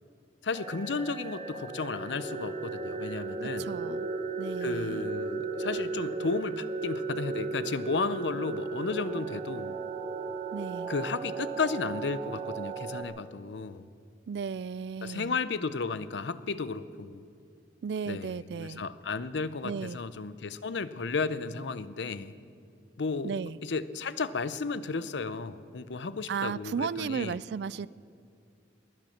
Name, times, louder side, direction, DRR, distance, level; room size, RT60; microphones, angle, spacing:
voice 1, 0.4-3.7 4.6-9.8 10.9-13.9 15.0-17.2 18.1-22.3 23.0-27.4, left 4 dB, 75° left, 14 dB, 0.6 m, -33 dB
sound 1, 0.5-13.0, right 4 dB, 35° right, 1.1 m, -35 dB
voice 2, 3.4-4.1 4.4-5.1 10.5-10.9 14.3-15.4 17.8-18.8 19.6-20.0 23.2-23.6 26.3-27.9, right 6 dB, 65° right, 20 dB, 0.3 m, -35 dB
19.0 x 10.5 x 6.5 m, 2.5 s
head